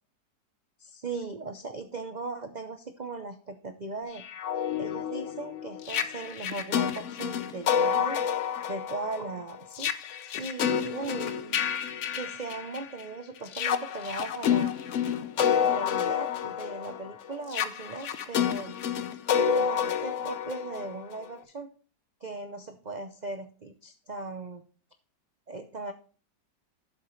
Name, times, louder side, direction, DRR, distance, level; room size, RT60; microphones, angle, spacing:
voice 1, 0.8-4.2 4.8-8.2 8.7-9.9 10.4-11.6 12.1-14.7 15.4-18.7 19.4-21.7 22.2-24.7 25.5-25.9, right 3 dB, 90° right, 7 dB, 0.3 m, -38 dB
sound 1, 4.2-13.0 13.5-21.3, left 8 dB, 60° left, 0.8 m, -29 dB
11.5 x 7.3 x 3.1 m, 0.39 s
omnidirectional pair, 1.9 m